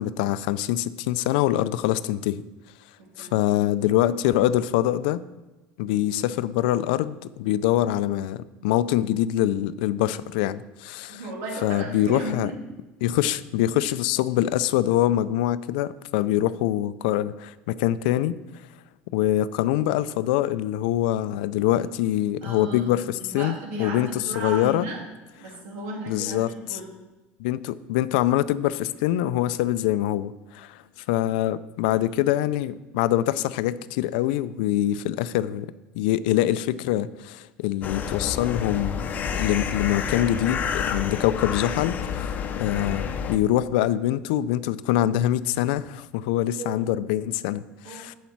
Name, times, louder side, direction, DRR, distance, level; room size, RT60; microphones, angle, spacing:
voice 1, 0.0-2.4 3.2-5.2 5.8-11.2 11.6-12.5 13.0-18.4 19.1-23.5 23.8-24.9 26.1-26.5 27.4-30.8 31.1-39.1 39.3-47.6 47.9-48.1, left 13 dB, 85° left, 16 dB, 0.4 m, -24 dB
voice 2, 3.0-3.3 11.1-12.8 13.8-13.9 22.4-25.0 25.4-26.8 31.8-32.0 46.6-46.8 47.8-48.1, right 2 dB, 75° right, -2 dB, 3.2 m, -35 dB
sound 1, 37.8-43.4, left 7 dB, 35° left, 0.7 m, -29 dB
8.1 x 7.2 x 4.6 m, 1.1 s
supercardioid pair, 125°, 5 cm